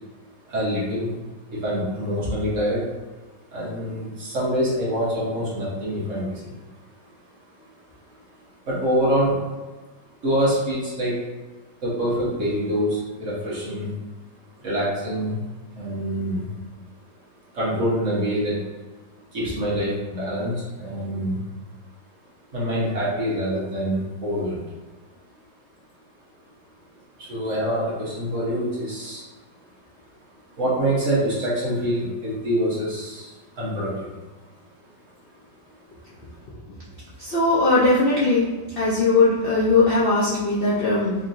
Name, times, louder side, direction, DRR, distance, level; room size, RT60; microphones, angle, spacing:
voice 1, 0.5-1.1 1.5-2.8 3.5-6.5 7.6-7.7 8.6-9.4 10.2-11.2 11.8-13.9 14.6-15.5 15.7-16.5 17.5-18.6 19.3-21.4 22.5-24.6 27.2-29.2 30.6-34.1, equal, 45° right, -7 dB, 1.4 m, -25 dB
voice 2, 37.2-38.5 38.8-41.1, left 3 dB, 80° left, -7 dB, 0.5 m, -19 dB
4.6 x 2.9 x 2.6 m, 1.2 s
omnidirectional pair, 1.9 m